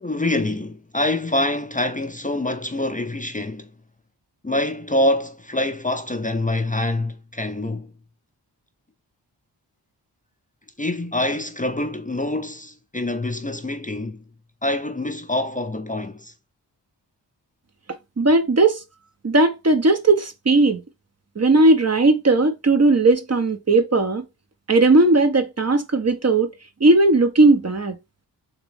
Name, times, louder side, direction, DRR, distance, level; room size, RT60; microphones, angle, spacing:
voice 1, 0.0-3.7 4.4-7.9 10.8-14.2 14.6-16.3, left 1 dB, 20° left, 0.6 m, -25 dB
voice 2, 18.2-18.8 19.2-20.8 21.4-24.2 24.7-26.5 26.8-28.0, right 2 dB, 35° right, 0.8 m, -17 dB
3.7 x 3.0 x 3.4 m
cardioid pair, 40°, 43 cm